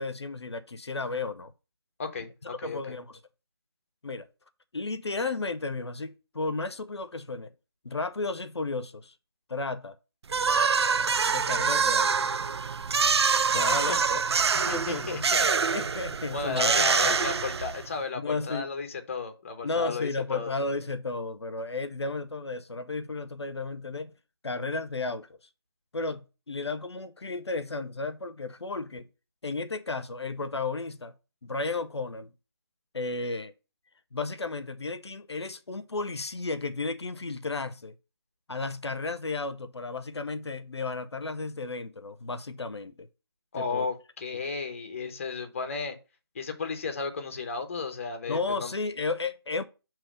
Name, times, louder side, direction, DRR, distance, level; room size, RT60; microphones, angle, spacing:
voice 1, 0.0-1.5 2.4-3.2 4.0-4.3 4.7-7.5 7.8-9.1 9.5-10.0 11.3-12.4 13.5-14.2 14.5-15.2 15.7-17.4 18.2-18.7 19.6-24.1 24.4-25.3 25.9-29.1 29.4-31.1 31.4-32.3 32.9-33.5 34.1-37.9 38.5-43.1 43.6-43.9 48.3-49.6, left 3 dB, 80° left, 0.7 m, -33 dB
voice 2, 2.0-2.8 13.5-14.0 14.8-15.5 16.3-20.5 43.5-46.0 46.3-48.7, left 4 dB, 30° left, 0.9 m, -34 dB
sound 1, 10.3-18.0, right 5 dB, 75° right, 0.4 m, -25 dB
6.9 x 3.1 x 4.9 m
figure-of-eight pair, 160°, 14 cm